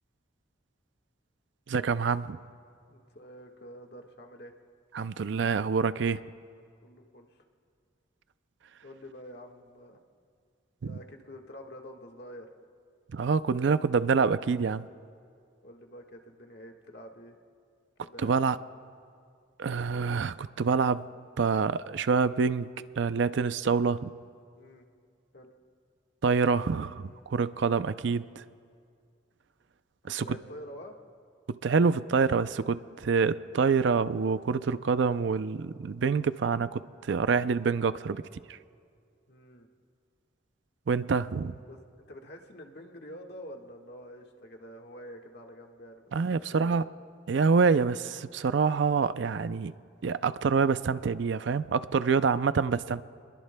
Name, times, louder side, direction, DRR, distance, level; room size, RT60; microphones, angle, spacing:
voice 1, 1.7-2.4 4.9-6.2 10.8-11.0 13.1-14.8 18.2-18.6 19.6-21.0 21.4-22.7 23.0-24.1 26.2-28.2 30.1-30.3 31.5-38.2 40.9-41.6 46.1-46.8 47.3-49.7 50.0-53.1, right 5 dB, 70° right, 14 dB, 0.4 m, -26 dB
voice 2, 2.9-4.5 6.8-7.4 8.8-10.0 10.8-12.5 15.6-17.3 18.0-18.3 24.6-24.8 25.3-25.5 30.0-31.0 39.3-39.7 41.7-41.8 42.1-46.1 46.5-46.8, equal, 55° left, 2 dB, 1.6 m, -47 dB
29.0 x 22.0 x 2.2 m, 2.2 s
head